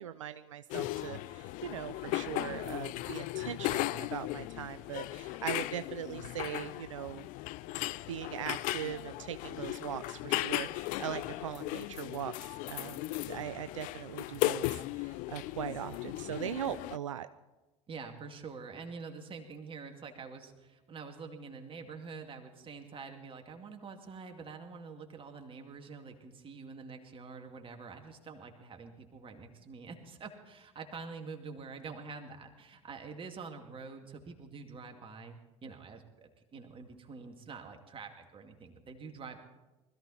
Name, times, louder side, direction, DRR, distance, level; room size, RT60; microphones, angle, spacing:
voice 1, 0.0-7.3 8.1-17.3, right 10 dB, 90° right, 11 dB, 0.4 m, -40 dB
sound 1, 0.7-17.0, left 18 dB, 55° left, 0.5 m, -37 dB
voice 2, 17.9-39.4, right 4 dB, 35° right, 4 dB, 2.3 m, -46 dB
20.5 x 14.0 x 4.3 m, 1.1 s
hypercardioid pair, 75°, 16 cm